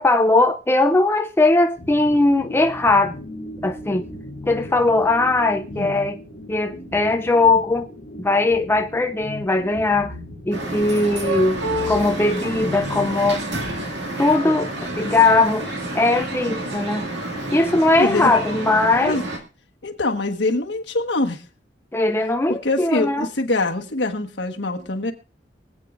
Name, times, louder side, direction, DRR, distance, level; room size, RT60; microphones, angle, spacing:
voice 1, 0.0-3.2 3.6-4.1 4.5-6.2 6.5-7.9 8.2-10.1 10.5-13.4 14.2-15.7 15.9-17.1 17.5-19.2 21.9-23.3, left 2 dB, 15° left, 0.5 m, -19 dB
sound 1, 1.8-13.6, left 1 dB, 55° left, 3.0 m, -37 dB
sound 2, 10.5-19.4, right 1 dB, 75° right, 2.2 m, -29 dB
voice 2, 18.0-18.3 19.0-19.2 19.8-21.4 22.5-25.1, left 2 dB, 75° left, 1.4 m, -24 dB
24.0 x 8.6 x 2.5 m
head